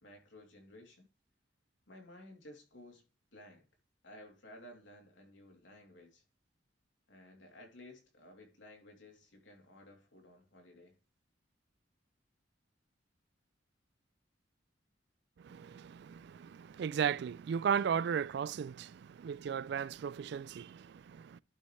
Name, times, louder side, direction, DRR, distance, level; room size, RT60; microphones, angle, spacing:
voice 1, 0.0-1.0 1.9-3.0 3.3-3.7 4.0-6.2 7.1-10.9, left 1 dB, 80° left, 2.9 m, -55 dB
voice 2, 15.4-21.4, right 7 dB, 60° right, 0.3 m, -36 dB
11.5 x 5.3 x 3.2 m
head